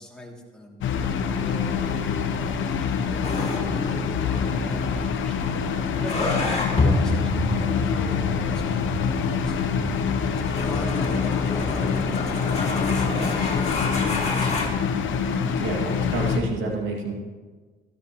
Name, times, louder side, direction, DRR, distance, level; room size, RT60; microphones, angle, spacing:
voice 1, 0.0-2.0 2.4-5.6 6.0-9.9 10.6-12.1 12.4-14.9, left 1 dB, 5° left, -3 dB, 2.6 m, -39 dB
sound 1, 0.8-16.4, left 6 dB, 80° left, 1.0 m, -26 dB
sound 2, 3.2-14.7, left 2 dB, 30° left, 2.6 m, -29 dB
voice 2, 15.6-17.1, right 3 dB, 85° right, -1 dB, 2.3 m, -28 dB
13.5 x 13.5 x 3.1 m, 1.4 s
cardioid pair, 90°, 20 cm